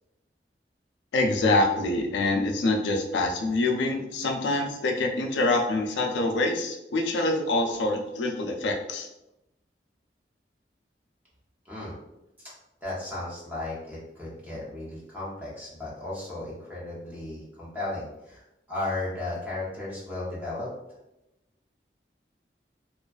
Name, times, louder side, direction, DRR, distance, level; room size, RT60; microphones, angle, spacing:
voice 1, 1.1-9.1, left 2 dB, 90° left, 3 dB, 0.4 m, -25 dB
voice 2, 11.6-12.0 12.4-12.5 12.8-18.4 18.7-20.7, left 2 dB, 10° right, -7 dB, 0.8 m, -35 dB
2.4 x 2.3 x 2.3 m, 0.89 s
head